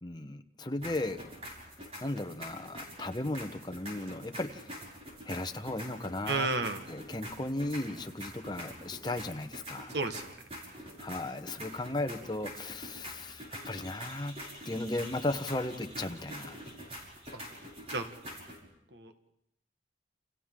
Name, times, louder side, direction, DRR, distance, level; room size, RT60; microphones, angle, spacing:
voice 1, 0.0-1.3 2.0-4.7 5.2-6.5 6.9-10.0 11.0-14.4 14.6-16.6, left 2 dB, 25° left, 7 dB, 1.0 m, -36 dB
sound 1, 0.8-18.6, equal, 35° right, 6.1 m, -46 dB
voice 2, 6.3-6.8 9.9-10.3 17.3-17.4 17.9-18.1 18.9-19.1, right 3 dB, 70° right, 7 dB, 1.4 m, -32 dB
29.5 x 29.0 x 3.8 m, 0.76 s
head